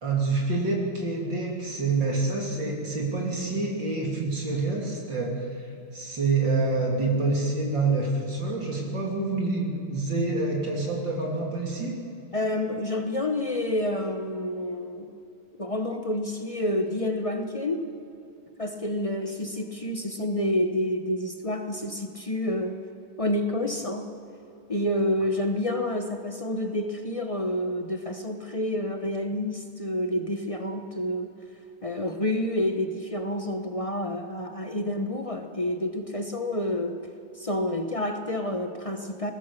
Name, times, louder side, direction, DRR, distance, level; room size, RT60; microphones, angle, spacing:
voice 1, 0.0-12.0, right 3 dB, 55° right, -1 dB, 3.6 m, -27 dB
voice 2, 12.3-15.2 15.6-17.9 18.6-22.8 23.2-24.1 24.7-31.3 31.8-37.0 37.3-39.3, left 1 dB, 40° left, 5 dB, 0.4 m, -29 dB
21.0 x 19.5 x 6.8 m, 2.7 s
omnidirectional pair, 2.4 m